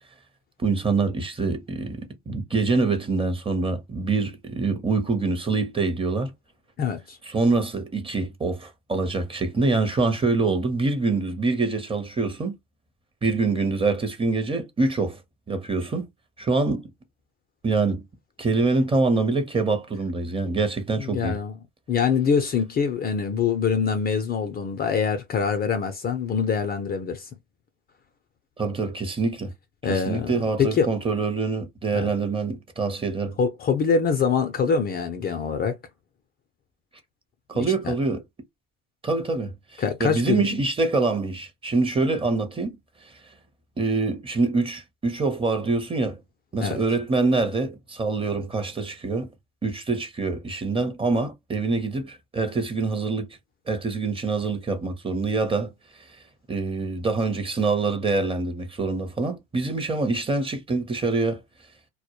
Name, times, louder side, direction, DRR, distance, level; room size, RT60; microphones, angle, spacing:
voice 1, 0.6-6.3 7.3-12.6 13.2-15.2 15.5-16.1 16.4-16.9 17.6-18.0 18.4-21.4 28.6-29.5 29.8-33.4 37.5-38.2 39.0-42.7 43.8-46.2 46.5-49.3 49.6-53.3 53.7-55.7 56.5-61.4, right 3 dB, 15° right, 0.7 m, -25 dB
voice 2, 6.8-7.2 21.0-21.6 21.9-27.3 29.8-30.9 31.9-32.1 33.4-35.8 37.8-37.9 39.8-40.5 46.6-46.8, left 6 dB, 30° left, 0.5 m, -24 dB
2.1 x 2.1 x 2.9 m
supercardioid pair, 95°, 31 cm